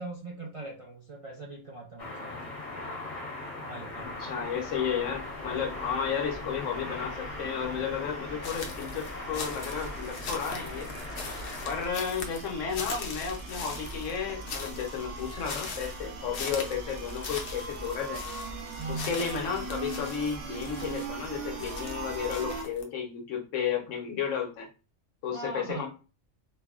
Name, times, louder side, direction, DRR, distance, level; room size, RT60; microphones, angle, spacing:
voice 1, 0.0-2.6 3.6-4.3 18.8-19.2 25.3-25.9, right 3 dB, 45° right, -3 dB, 0.4 m, -40 dB
sound 1, 2.0-11.8, left 2 dB, 40° left, 1.1 m, -40 dB
sound 2, 3.9-22.6, right 3 dB, 80° right, 1.1 m, -41 dB
voice 2, 4.2-10.9 11.6-18.2 19.0-24.7 25.2-25.9, left 7 dB, 85° left, 1 dB, 1.2 m, -33 dB
sound 3, 8.4-22.8, left 4 dB, 60° left, 0.7 m, -41 dB
4.5 x 2.0 x 2.4 m, 0.33 s
omnidirectional pair, 1.3 m